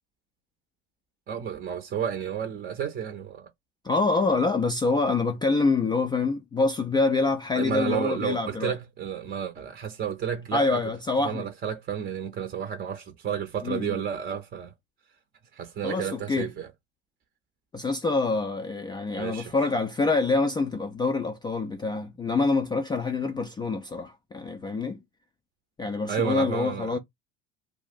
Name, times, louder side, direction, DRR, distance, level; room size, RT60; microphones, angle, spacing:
voice 1, 1.3-3.5 7.5-14.7 15.5-16.7 19.2-19.7 26.1-27.0, right 8 dB, 25° right, 0.6 m, -32 dB
voice 2, 3.8-8.7 10.5-11.5 13.6-14.0 15.8-16.5 17.7-25.0 25.8-27.0, left 3 dB, 15° left, 0.3 m, -26 dB
2.3 x 2.1 x 3.9 m
hypercardioid pair, 85°, 35 cm